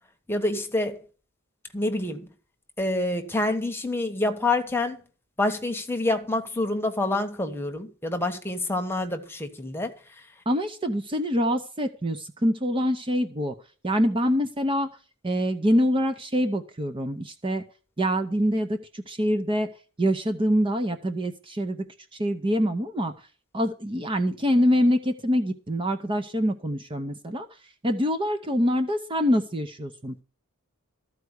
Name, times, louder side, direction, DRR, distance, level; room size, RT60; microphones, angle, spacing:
voice 1, 0.3-1.0 1.7-2.3 2.8-5.0 5.4-9.9, left 2 dB, 10° left, 1.2 m, -27 dB
voice 2, 10.5-13.5 13.8-14.9 15.2-17.6 18.0-19.7 20.0-21.8 22.2-23.1 23.5-27.5 27.8-30.2, equal, 25° right, 0.7 m, -25 dB
13.5 x 4.7 x 8.0 m
head